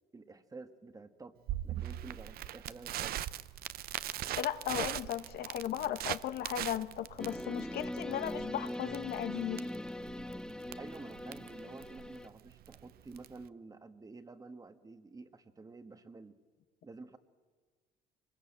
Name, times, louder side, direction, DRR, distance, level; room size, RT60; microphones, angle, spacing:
voice 1, 0.1-1.3 1.6-3.1 10.8-16.4 16.8-17.2, right 3 dB, 20° right, 9 dB, 1.4 m, -50 dB
Crackle, 1.5-13.5, right 13 dB, 65° right, 0.7 m, -41 dB
voice 2, 4.4-9.7, left 11 dB, 65° left, 11 dB, 1.1 m, -36 dB
sound 1, 7.2-12.3, left 1 dB, 5° left, 0.6 m, -41 dB
23.0 x 20.5 x 8.6 m, 1.5 s
cardioid pair, 110°, 17 cm